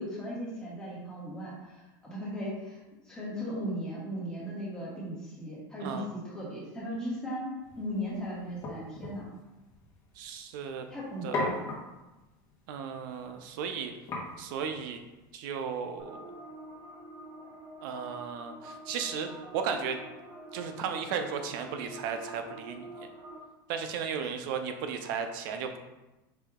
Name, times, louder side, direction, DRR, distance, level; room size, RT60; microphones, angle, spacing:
voice 1, 0.0-2.8 3.0-9.3 10.9-11.6 24.2-24.3, equal, 5° left, -7 dB, 1.4 m, -37 dB
sound 1, 7.6-15.3, left 2 dB, 25° left, 1.2 m, -41 dB
voice 2, 10.2-10.9 11.2-11.5 12.7-13.9 14.4-15.0 15.3-16.3 17.8-19.3 19.5-20.0 20.5-22.9 23.7-25.8, right 6 dB, 65° right, 6 dB, 0.6 m, -35 dB
sound 2, 16.0-23.4, right 1 dB, 30° right, 0.9 m, -46 dB
4.8 x 2.7 x 3.6 m, 1.0 s
supercardioid pair, 150°, 12 cm